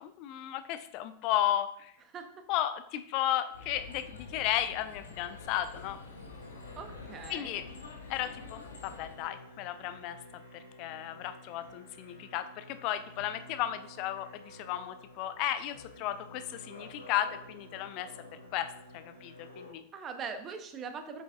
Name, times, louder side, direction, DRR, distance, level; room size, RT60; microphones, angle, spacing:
voice 1, 0.0-1.9 2.5-6.0 7.3-7.7 8.1-10.2 10.5-18.1 18.5-19.8, left 12 dB, 40° left, 11 dB, 0.4 m, -34 dB
sound 1, 3.5-9.2, left 4 dB, 70° left, 1.4 m, -48 dB
Musical instrument, 5.7-19.7, left 1 dB, 90° left, 2.1 m, -51 dB
voice 2, 6.8-7.6 19.9-21.2, right 5 dB, 30° right, 8 dB, 0.9 m, -41 dB
8.4 x 6.8 x 2.4 m, 0.72 s
figure-of-eight pair, 90°, 0 cm